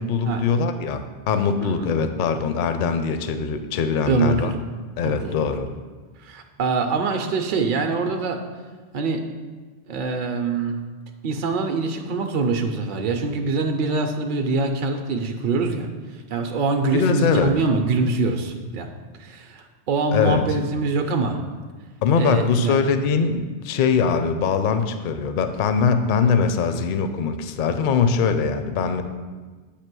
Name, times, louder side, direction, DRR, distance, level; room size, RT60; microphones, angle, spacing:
voice 1, 0.0-4.5 5.0-5.7 16.9-17.5 20.1-20.4 22.0-29.0, left 5 dB, 60° left, 9 dB, 0.6 m, -22 dB
voice 2, 4.1-4.5 5.0-5.5 6.2-8.4 8.9-9.3 9.9-10.9 11.2-15.9 16.3-18.9 19.2-21.4 22.1-22.8, right 3 dB, 55° right, 4 dB, 0.7 m, -24 dB
8.5 x 2.9 x 6.0 m, 1.4 s
omnidirectional pair, 1.1 m